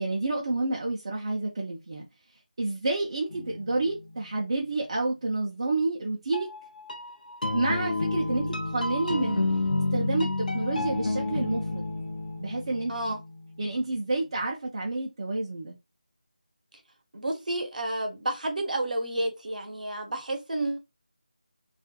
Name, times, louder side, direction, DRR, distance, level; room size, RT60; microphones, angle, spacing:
voice 1, 0.0-2.1 2.6-6.5 7.5-9.4 9.9-11.8 12.4-13.1 13.6-15.8, right 2 dB, 40° right, 0.4 m, -29 dB
sound 1, 3.3-4.5 6.3-14.0, left 2 dB, 70° left, 0.5 m, -31 dB
voice 2, 12.9-13.2 17.1-20.8, right 1 dB, 65° right, 0.7 m, -30 dB
2.4 x 2.1 x 2.7 m
figure-of-eight pair, 165°, 5 cm